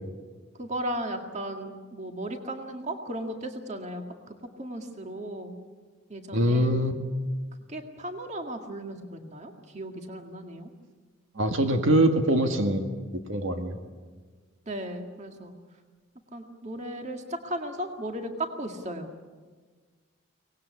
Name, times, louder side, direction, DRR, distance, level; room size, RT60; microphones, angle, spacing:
voice 1, 0.6-5.6 6.1-6.8 7.7-10.7 11.3-11.5 14.7-15.6 16.3-19.1, right 1 dB, 30° right, 4 dB, 1.9 m, -36 dB
voice 2, 6.3-7.0 11.4-12.9 13.3-13.8, right 1 dB, 65° right, 5 dB, 1.9 m, -23 dB
24.0 x 19.0 x 9.6 m, 1.5 s
head